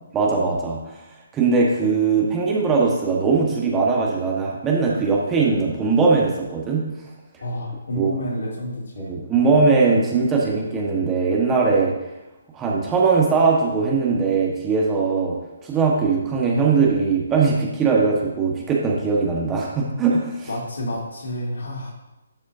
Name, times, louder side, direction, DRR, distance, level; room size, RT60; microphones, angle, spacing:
voice 1, 0.1-0.8 1.3-6.9 8.0-8.2 9.1-11.9 12.5-15.4 15.6-20.5, right 4 dB, 15° right, -3 dB, 1.4 m, -20 dB
voice 2, 7.4-9.2 20.4-21.9, left 1 dB, 70° left, -3 dB, 2.7 m, -29 dB
11.5 x 5.1 x 2.7 m, 0.99 s
figure-of-eight pair, 140°, 0 cm